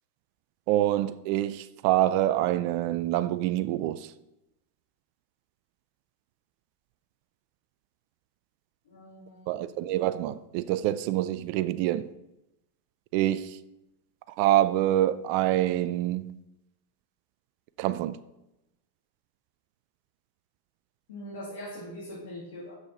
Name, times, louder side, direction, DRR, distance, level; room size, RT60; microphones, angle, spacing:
voice 1, 0.7-4.1 9.5-12.1 13.1-13.5 14.4-16.3 17.8-18.2, right 14 dB, 50° right, 0.4 m, -26 dB
voice 2, 8.8-9.7 21.1-22.8, equal, 70° left, 2.8 m, -42 dB
6.5 x 6.2 x 5.6 m
hypercardioid pair, 100°, 0 cm